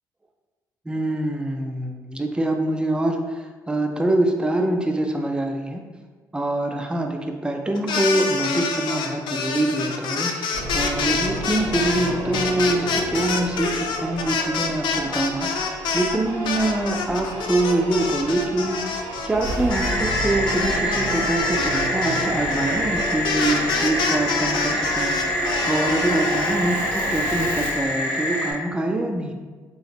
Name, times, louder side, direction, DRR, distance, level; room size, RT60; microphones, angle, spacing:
voice 1, 0.9-5.8 6.3-18.8 19.2-29.3, right 1 dB, 10° right, 3 dB, 0.4 m, -25 dB
sound 1, 7.8-16.2 16.5-26.5, left 5 dB, 70° left, 0.4 m, -27 dB
Singing / Musical instrument, 10.5-27.9, right 1 dB, 80° right, 0.7 m, -31 dB
sound 2, 19.7-28.5, equal, 90° left, 0.8 m, -26 dB
3.7 x 2.0 x 3.3 m, 1.4 s
supercardioid pair, 60°, 8 cm